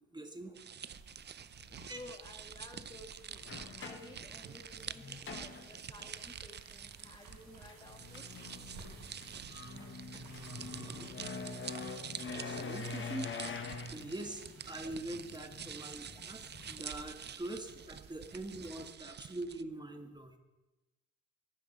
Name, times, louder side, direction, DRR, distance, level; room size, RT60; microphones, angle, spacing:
voice 1, 0.1-0.6 1.9-2.0 10.1-11.1 12.1-16.4 16.7-20.4, right 1 dB, 15° right, 5 dB, 1.8 m, -44 dB
sound 1, 0.5-19.6, right 8 dB, 35° right, 0.6 m, -48 dB
sound 2, 0.9-18.9, right 3 dB, 75° right, 4.7 m, -58 dB
voice 2, 1.9-3.4 3.8-8.2, left 1 dB, 15° left, 4 dB, 1.5 m, -53 dB
sound 3, 2.6-2.7 3.3-6.2 7.5-16.9, left 4 dB, 40° left, 1.4 m, -45 dB
15.0 x 11.5 x 5.4 m, 1.1 s
cardioid pair, 90°, 30 cm